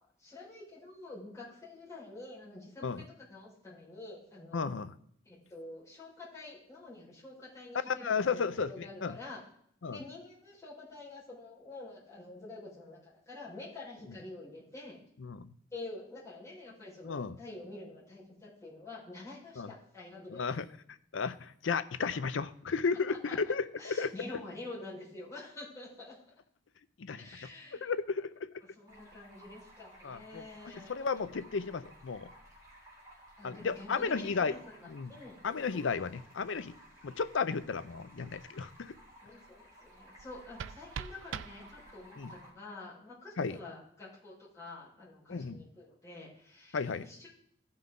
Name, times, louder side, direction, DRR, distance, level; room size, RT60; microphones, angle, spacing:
voice 1, 0.0-4.7 5.2-9.4 9.9-15.0 15.7-20.5 23.1-23.3 23.8-26.1 27.2-27.9 28.8-31.1 33.4-34.8 35.1-35.4 39.2-47.3, left 2 dB, 15° left, -8 dB, 4.6 m, -48 dB
voice 2, 4.5-4.9 7.9-9.2 9.8-10.0 15.2-15.5 17.0-17.3 19.6-19.7 20.3-20.7 21.1-24.1 27.0-27.2 27.7-28.5 30.0-30.4 30.9-32.3 33.4-34.6 34.9-35.1 35.4-36.7 37.0-38.9 42.2-42.3 43.4-43.6 45.3-45.6 46.7-47.0, left 5 dB, 70° left, 14 dB, 0.5 m, -33 dB
Stream, 28.9-42.5, equal, 15° right, 2.7 m, -57 dB
sound 1, 40.2-42.2, right 7 dB, 70° right, 0.4 m, -44 dB
15.5 x 5.8 x 3.7 m, 0.66 s
head